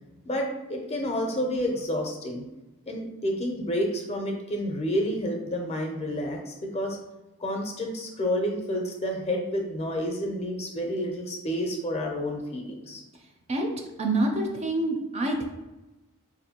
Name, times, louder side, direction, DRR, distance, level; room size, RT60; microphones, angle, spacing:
voice 1, 0.3-2.4 2.9-7.0 7.4-13.0, equal, 30° left, 1 dB, 0.5 m, -29 dB
voice 2, 14.0-15.4, right 2 dB, 30° right, 2 dB, 0.4 m, -26 dB
4.3 x 2.6 x 2.8 m, 1.0 s
head